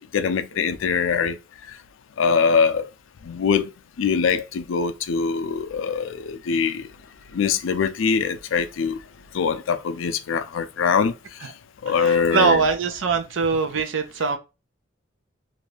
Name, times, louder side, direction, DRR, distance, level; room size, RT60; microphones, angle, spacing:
voice 1, 0.1-1.4 2.2-2.9 3.3-3.7 4.0-6.7 7.3-9.0 9.3-11.1 11.8-12.6, left 5 dB, 90° left, 0.4 m, -22 dB
voice 2, 11.9-14.4, right 4 dB, 80° right, 0.5 m, -22 dB
2.6 x 2.3 x 3.1 m
head